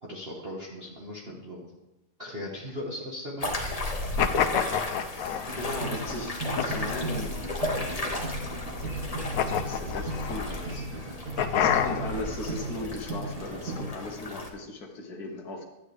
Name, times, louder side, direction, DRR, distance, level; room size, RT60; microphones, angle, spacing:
voice 1, 0.0-1.6 2.2-3.7, left 1 dB, 35° right, -5 dB, 1.2 m, -38 dB
sound 1, 3.4-14.5, left 1 dB, 25° left, 0.9 m, -34 dB
sound 2, 4.2-5.7 6.6-7.1 7.8-8.5 9.4-10.5 11.4-12.2, left 9 dB, 85° left, 0.7 m, -28 dB
voice 2, 4.7-7.4 7.8-8.2 8.8-11.3 11.6-15.6, left 2 dB, 55° left, 3 dB, 1.4 m, -38 dB
sound 3, 5.4-13.9, right 2 dB, 50° right, 1.9 m, -37 dB
12.0 x 8.5 x 3.3 m, 1.0 s
omnidirectional pair, 2.2 m